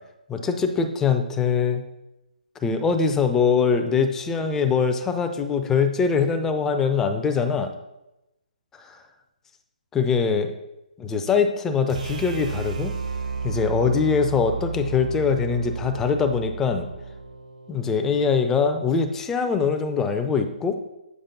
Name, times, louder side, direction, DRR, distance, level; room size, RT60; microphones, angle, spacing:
voice 1, 0.3-1.8 2.6-7.7 9.9-10.5 11.0-13.0 13.4-16.9 17.7-20.8, left 5 dB, 10° left, 7 dB, 0.4 m, -22 dB
sound 1, 11.9-18.0, right 5 dB, 55° right, 0.8 m, -32 dB
7.1 x 4.9 x 2.7 m, 0.93 s
figure-of-eight pair, 135°, 5 cm